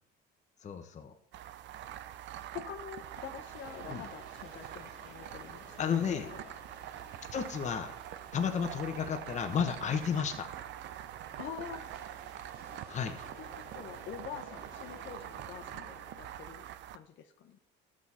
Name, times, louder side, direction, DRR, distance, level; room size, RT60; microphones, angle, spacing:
voice 1, 0.6-1.1 3.9-4.0 5.8-6.3 7.3-7.9 8.3-10.5 12.9-13.2, left 7 dB, 35° left, 5 dB, 1.0 m, -32 dB
sound 1, 1.3-17.0, right 12 dB, 60° right, 0.5 m, -45 dB
voice 2, 2.5-6.5 11.4-11.9 12.7-12.8 13.4-16.6 16.9-17.6, left 9 dB, 65° left, 6 dB, 1.0 m, -46 dB
sound 2, 2.9-16.1, right 1 dB, 85° right, 3.9 m, -54 dB
13.0 x 6.3 x 4.2 m, 0.72 s
cardioid pair, 120°, 21 cm